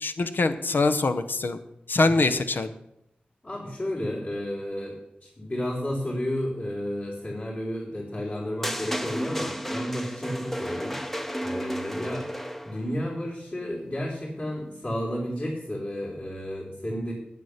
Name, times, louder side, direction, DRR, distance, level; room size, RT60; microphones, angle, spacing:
voice 1, 0.0-1.6 1.9-2.7, left 3 dB, 75° left, 10 dB, 0.8 m, -23 dB
voice 2, 3.4-5.0 5.2-12.3 12.6-17.1, equal, 50° left, -10 dB, 3.9 m, -32 dB
sound 1, 8.6-12.9, equal, 5° left, 0.7 m, -32 dB
8.6 x 8.3 x 6.5 m, 0.82 s
cardioid pair, 50°, 3 cm